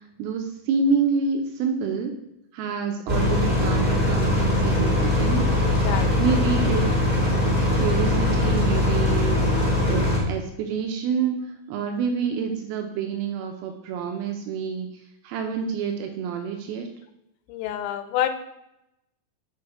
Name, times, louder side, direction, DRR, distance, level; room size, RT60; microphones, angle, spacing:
voice 1, 0.2-2.1 2.5-5.5 6.2-6.9 7.7-9.4 9.9-14.9 15.2-16.9, right 5 dB, 85° right, 4 dB, 2.5 m, -27 dB
idle mitsubishi canter lorry truck in traffic jam, 3.1-10.2, left 1 dB, 5° right, 1.0 m, -21 dB
voice 2, 5.6-6.1 17.5-18.3, left 11 dB, 85° left, 8 dB, 2.5 m, -27 dB
6.5 x 4.7 x 4.7 m, 0.83 s
omnidirectional pair, 4.3 m